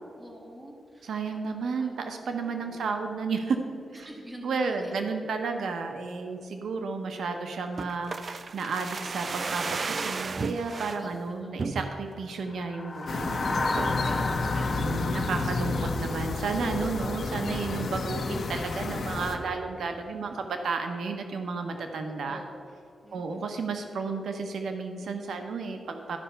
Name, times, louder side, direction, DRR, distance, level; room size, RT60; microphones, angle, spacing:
voice 1, 0.2-1.4 1.8-1.9 2.4-2.8 3.9-5.0 11.0-11.5 13.6-14.8 22.0-22.5 23.0-23.6, right 1 dB, 20° right, 0 dB, 1.7 m, -46 dB
voice 2, 1.0-3.6 3.9-4.1 4.4-13.9 14.7-22.4 23.1-26.2, right 4 dB, 85° right, 5 dB, 0.7 m, -32 dB
sound 1, 7.8-11.0 11.6-12.2 12.6-12.7 13.0-13.3 13.8-14.1 14.6-15.3 15.5-15.6, right 4 dB, 45° right, 0.3 m, -34 dB
sound 2, 12.5-17.1, left 3 dB, 35° left, 0.8 m, -34 dB
sound 3, 13.1-19.4, left 3 dB, 60° left, 0.9 m, -30 dB
12.5 x 5.5 x 5.6 m, 2.5 s
wide cardioid pair, 120°, 0 cm